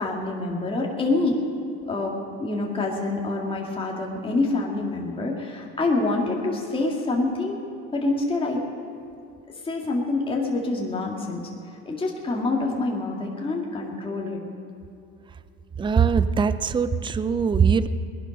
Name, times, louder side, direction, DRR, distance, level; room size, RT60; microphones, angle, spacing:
voice 1, 0.0-1.4 1.9-7.6 7.9-8.6 9.6-11.4 11.8-14.4, left 2 dB, 15° left, -2 dB, 2.2 m, -26 dB
voice 2, 15.8-17.9, right 6 dB, 15° right, 13 dB, 0.5 m, -21 dB
19.5 x 11.5 x 5.4 m, 2.6 s
supercardioid pair, 100°, 32 cm